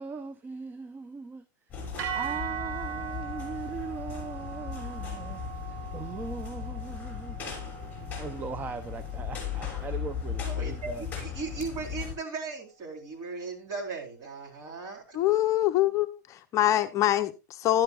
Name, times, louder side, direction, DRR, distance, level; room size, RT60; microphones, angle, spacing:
voice 1, 0.0-1.4 1.8-7.4 8.2-11.1, right 4 dB, 20° right, 0.6 m, -40 dB
sound 1, 1.7-12.2, left 7 dB, 15° left, 6.3 m, -37 dB
sound 2, 2.0-10.2, right 9 dB, 75° right, 3.5 m, -40 dB
voice 2, 10.5-15.2, right 4 dB, 40° right, 4.1 m, -37 dB
voice 3, 15.1-17.8, left 13 dB, 30° left, 0.7 m, -25 dB
12.0 x 11.5 x 2.4 m
supercardioid pair, 130°, 10 cm